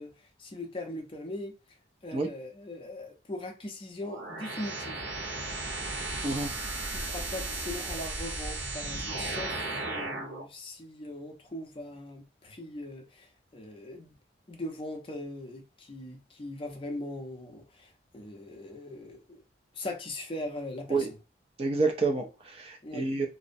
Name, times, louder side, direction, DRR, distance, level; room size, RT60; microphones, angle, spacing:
voice 1, 0.0-1.5 2.0-5.0 6.9-14.1 14.5-19.4 19.7-21.1 22.8-23.1, left 1 dB, 30° left, 0.5 m, -40 dB
sound 1, 4.0-10.5, right 2 dB, 85° right, 0.8 m, -35 dB
voice 2, 21.6-23.3, right 3 dB, 30° right, 0.4 m, -28 dB
2.4 x 2.0 x 2.6 m
head